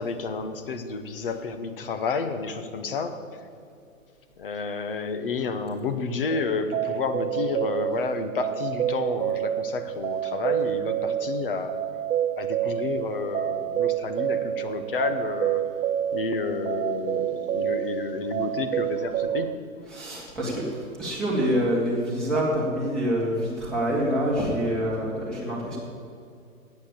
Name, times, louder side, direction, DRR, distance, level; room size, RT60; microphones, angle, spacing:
voice 1, 0.0-3.4 4.4-11.8 12.4-15.6 16.1-19.5, left 4 dB, 40° left, 9 dB, 0.9 m, -30 dB
sound 1, 6.3-19.5, right 11 dB, 70° right, 0.5 m, -28 dB
voice 2, 19.9-25.8, equal, ahead, -6 dB, 1.8 m, -26 dB
9.3 x 8.2 x 8.6 m, 2.4 s
hypercardioid pair, 165°, 42 cm